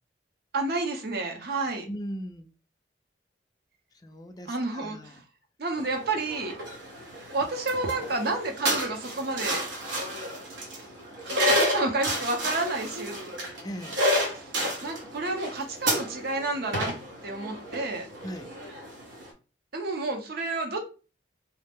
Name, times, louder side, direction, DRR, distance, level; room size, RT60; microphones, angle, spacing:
voice 1, 0.5-1.8 4.5-5.2 5.6-6.5 7.3-9.6 11.2-13.2 14.3-14.5 14.8-16.9 17.2-18.1 19.7-20.8, right 2 dB, 55° right, 0.7 m, -30 dB
voice 2, 1.9-2.5 4.0-5.2 13.6-14.0 18.2-18.5, equal, 20° left, 0.3 m, -38 dB
sound 1, 5.8-19.3, equal, 85° right, 0.8 m, -31 dB
2.4 x 2.0 x 3.4 m
head